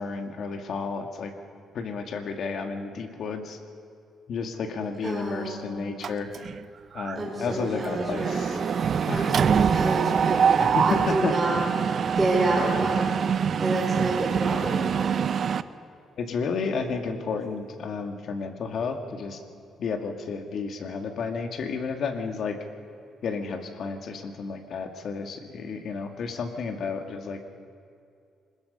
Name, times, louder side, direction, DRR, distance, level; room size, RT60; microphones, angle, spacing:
voice 1, 0.0-1.3 1.7-3.6 4.3-6.3 6.9-8.6 9.1-9.3 10.6-11.3 16.2-19.4 19.8-22.6 23.2-27.4, left 4 dB, 65° left, 5 dB, 2.1 m, -31 dB
voice 2, 5.0-5.7 7.2-8.8 9.1-13.2 13.6-15.3, right 2 dB, 15° right, -5 dB, 4.2 m, -29 dB
Mechanisms, 6.0-6.6 7.0-7.2 7.4-15.6, right 7 dB, 55° right, 0.6 m, -25 dB
25.5 x 21.0 x 5.5 m, 2.4 s
cardioid pair, 90°, 0 cm